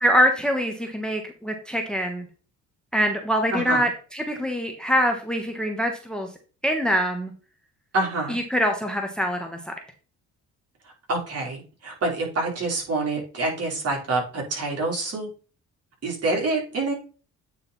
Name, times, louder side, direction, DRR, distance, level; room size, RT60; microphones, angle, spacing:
voice 1, 0.0-2.3 2.9-6.3 6.6-7.3 8.3-9.7, equal, 5° left, 4 dB, 1.3 m, -24 dB
voice 2, 3.5-3.9 7.9-8.4 11.1-15.3 16.0-16.9, right 2 dB, 55° right, -1 dB, 3.6 m, -27 dB
9.0 x 4.0 x 4.1 m, 0.36 s
cardioid pair, 90°, 30 cm